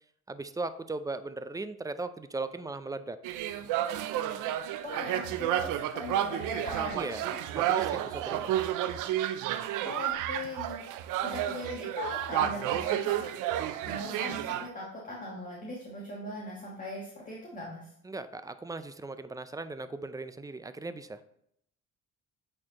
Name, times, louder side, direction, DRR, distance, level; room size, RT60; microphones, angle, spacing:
voice 1, 0.3-3.2 6.9-8.6 18.0-21.2, right 3 dB, 10° right, 11 dB, 0.4 m, -38 dB
sound 1, 3.2-14.7, right 11 dB, 90° right, 0.5 m, -31 dB
voice 2, 4.8-7.2 9.8-10.8 11.2-13.3 13.9-17.8, left 1 dB, 25° left, -4 dB, 1.5 m, -39 dB
8.5 x 4.4 x 2.9 m, 0.72 s
cardioid pair, 90°, 30 cm